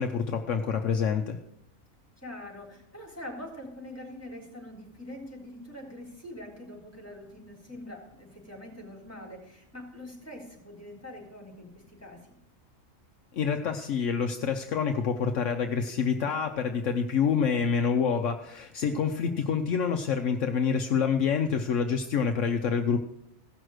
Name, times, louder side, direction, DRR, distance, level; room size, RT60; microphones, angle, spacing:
voice 1, 0.0-1.4 13.3-23.0, left 6 dB, 70° left, 6 dB, 1.1 m, -27 dB
voice 2, 2.2-12.3 18.8-19.3, left 1 dB, 10° left, -1 dB, 3.7 m, -44 dB
16.0 x 6.2 x 6.5 m, 0.77 s
omnidirectional pair, 1.4 m